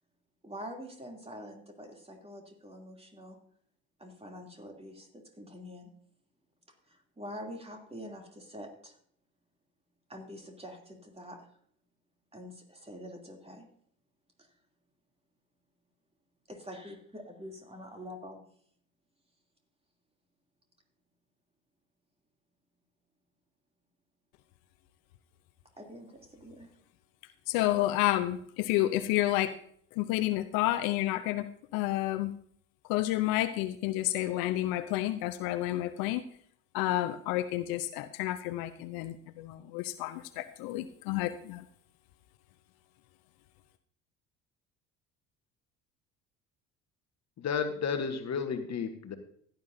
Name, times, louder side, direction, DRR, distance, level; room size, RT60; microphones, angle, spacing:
voice 1, 0.4-3.4 4.0-5.9 6.7-9.0 10.1-11.5 12.3-13.7 14.4-14.5 16.5-18.4 25.8-26.7, equal, 15° right, 2 dB, 3.0 m, -46 dB
voice 2, 27.5-29.5 29.9-32.4 32.9-36.2 36.7-41.6, left 15 dB, 60° left, 12 dB, 0.8 m, -30 dB
voice 3, 47.4-49.2, left 6 dB, 45° left, 7 dB, 1.4 m, -32 dB
16.0 x 10.5 x 2.7 m, 0.62 s
hypercardioid pair, 60°, 39 cm